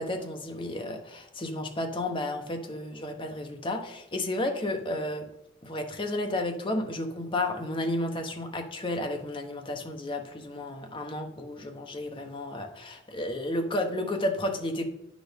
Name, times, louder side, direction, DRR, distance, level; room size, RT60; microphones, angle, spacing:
voice 1, 0.0-5.3 5.6-14.8, left 1 dB, 25° left, 4 dB, 0.9 m, -32 dB
9.2 x 6.2 x 3.5 m, 0.84 s
head